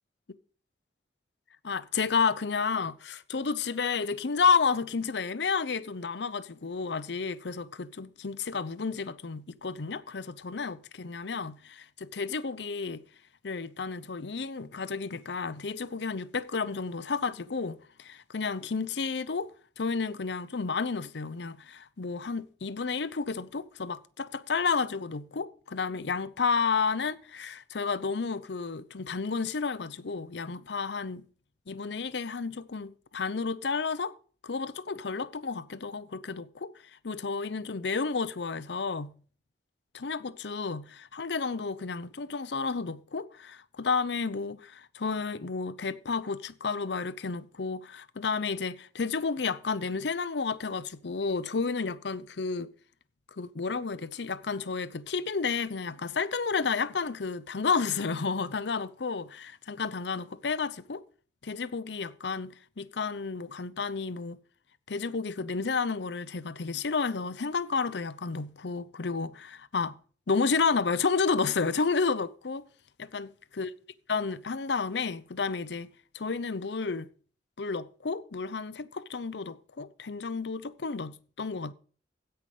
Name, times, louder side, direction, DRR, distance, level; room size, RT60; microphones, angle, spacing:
voice 1, 1.6-13.0 13.4-19.5 19.8-31.2 31.7-34.2 34.4-36.7 37.0-39.1 39.9-52.7 53.4-61.0 61.4-64.4 64.9-70.0 70.3-72.6 73.0-73.7 74.1-75.9 76.1-77.1 77.6-81.7, left 5 dB, 70° left, 0.7 m, -31 dB
16.0 x 5.7 x 4.9 m
head